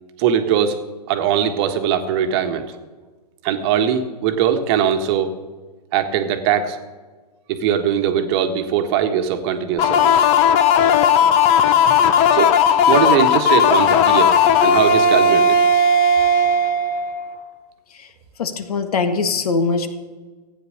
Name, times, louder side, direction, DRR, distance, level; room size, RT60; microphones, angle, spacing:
voice 1, 0.2-0.8 1.1-2.7 3.4-5.3 5.9-6.8 7.5-10.3 11.2-11.3 11.8-12.0 12.3-14.3 14.6-15.6, right 8 dB, 40° right, 6 dB, 1.4 m, -20 dB
sound 1, 9.8-17.4, left 4 dB, 30° left, 0.9 m, -15 dB
voice 2, 18.4-19.9, left 4 dB, 60° left, 8 dB, 1.7 m, -21 dB
14.5 x 9.2 x 6.5 m, 1.3 s
hypercardioid pair, 125°, 21 cm